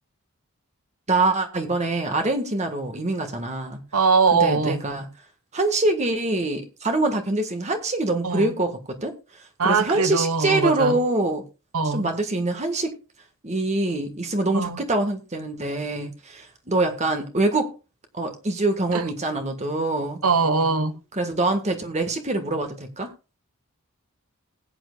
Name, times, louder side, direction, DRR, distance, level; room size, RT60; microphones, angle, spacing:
voice 1, 1.1-3.8 4.3-5.1 5.5-9.1 9.6-11.4 11.8-13.0 13.4-17.7 18.1-20.2 21.2-23.1, right 2 dB, 30° right, 1.5 m, -24 dB
voice 2, 3.9-4.8 8.2-8.5 9.6-11.0 11.7-12.1 14.5-14.8 18.9-19.1 20.2-21.0, right 4 dB, 80° right, 1.2 m, -21 dB
20.0 x 9.0 x 2.4 m
head